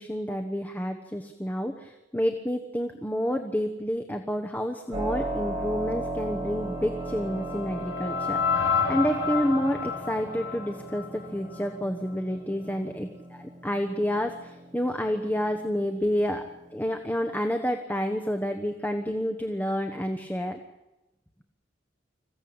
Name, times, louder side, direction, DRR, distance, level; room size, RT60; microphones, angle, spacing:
voice 1, 0.0-16.4 16.7-20.6, equal, 10° left, 5 dB, 1.1 m, -29 dB
Keyboard (musical), 4.9-17.4, right 1 dB, 20° right, 7.1 m, -38 dB
sound 1, 6.6-11.8, left 6 dB, 90° left, 3.5 m, -30 dB
26.5 x 15.5 x 8.8 m, 1.0 s
head